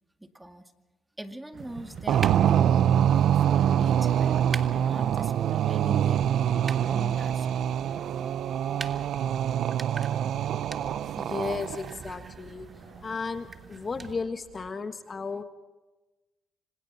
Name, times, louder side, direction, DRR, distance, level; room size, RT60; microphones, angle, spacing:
voice 1, 0.2-0.7 1.2-2.8 3.1-4.4 4.7-7.5, right 1 dB, 10° right, 6 dB, 2.1 m, -42 dB
sound 1, 1.5-14.1, right 5 dB, 50° right, 6.3 m, -46 dB
sound 2, 1.6-14.1, right 4 dB, 35° right, 1.6 m, -46 dB
sound 3, 2.1-12.0, right 9 dB, 70° right, 0.6 m, -25 dB
voice 2, 11.2-12.7 13.0-15.4, left 4 dB, 35° left, 8 dB, 1.4 m, -34 dB
26.5 x 26.0 x 4.2 m, 1.1 s
cardioid pair, 90°, 0 cm